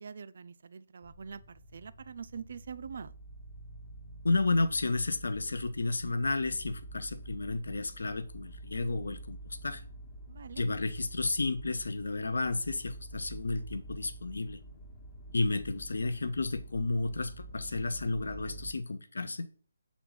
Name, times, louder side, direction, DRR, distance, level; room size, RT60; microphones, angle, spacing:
voice 1, 0.0-3.1 10.3-10.6, right 6 dB, 50° right, 0.4 m, -44 dB
sound 1, 1.0-18.7, right 1 dB, 35° left, 1.0 m, -48 dB
voice 2, 4.2-9.8 10.6-14.6 15.3-19.5, left 3 dB, 65° left, 0.5 m, -32 dB
7.0 x 3.6 x 3.8 m
figure-of-eight pair, 145°, 0 cm